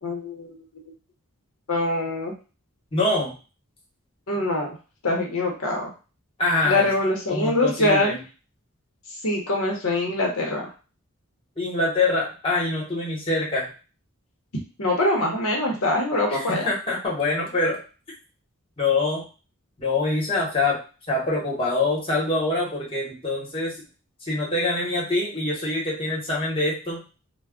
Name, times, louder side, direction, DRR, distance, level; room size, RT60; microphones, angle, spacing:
voice 1, 0.0-0.6 1.7-2.3 4.3-4.7 5.0-5.9 6.6-8.2 9.2-10.7 14.8-16.7, left 2 dB, 80° left, 0 dB, 0.8 m, -23 dB
voice 2, 2.9-3.3 6.4-6.9 7.3-8.1 11.6-13.7 16.3-17.8 18.8-19.2 19.8-20.8 21.1-23.7 24.2-27.0, left 2 dB, 25° left, -5 dB, 1.0 m, -24 dB
2.3 x 2.1 x 3.5 m, 0.34 s
head